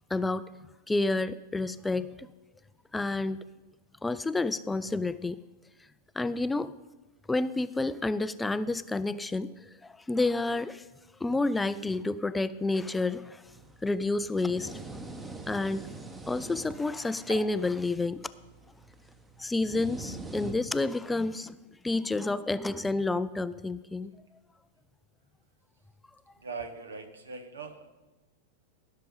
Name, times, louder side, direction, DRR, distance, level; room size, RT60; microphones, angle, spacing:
voice 1, 0.1-0.4 0.9-2.3 2.9-3.4 4.0-5.4 6.2-6.7 7.3-10.8 11.2-13.4 13.8-15.0 15.5-15.9 16.3-18.2 19.4-21.6 21.8-24.1, left 2 dB, 10° left, 15 dB, 0.4 m, -29 dB
sound 1, 13.5-21.0, right 3 dB, 15° right, 1.1 m, -44 dB
voice 2, 26.4-27.9, right 5 dB, 75° right, 9 dB, 1.2 m, -40 dB
16.0 x 6.6 x 5.5 m, 1.1 s
figure-of-eight pair, 90°, 0 cm